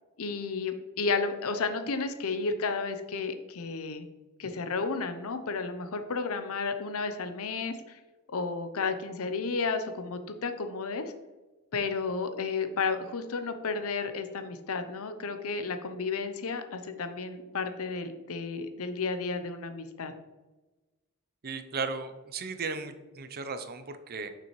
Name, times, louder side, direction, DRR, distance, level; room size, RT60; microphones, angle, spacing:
voice 1, 0.2-4.1 4.4-8.0 8.3-11.0 11.7-20.1, left 4 dB, 70° left, 9 dB, 0.7 m, -32 dB
voice 2, 21.4-24.3, right 4 dB, 45° right, 9 dB, 0.6 m, -36 dB
6.8 x 6.2 x 3.2 m, 1.2 s
head